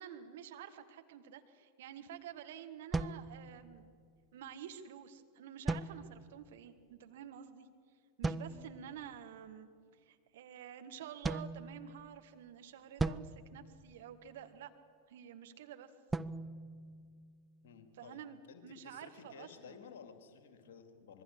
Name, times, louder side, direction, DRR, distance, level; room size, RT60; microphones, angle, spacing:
voice 1, 0.0-3.9 4.3-7.7 8.2-9.7 10.0-14.7 15.1-15.9 18.0-18.4 18.6-19.8, right 9 dB, 55° right, 7 dB, 1.6 m, -50 dB
sound 1, 2.9-4.0 5.7-6.5 8.2-8.9 11.2-12.3 13.0-14.5 16.1-17.6, right 3 dB, 10° right, 0.6 m, -39 dB
voice 2, 17.6-18.2 18.5-21.2, left 6 dB, 55° left, 7 dB, 2.5 m, -54 dB
25.5 x 22.0 x 6.6 m, 2.2 s
figure-of-eight pair, 90°, 0 cm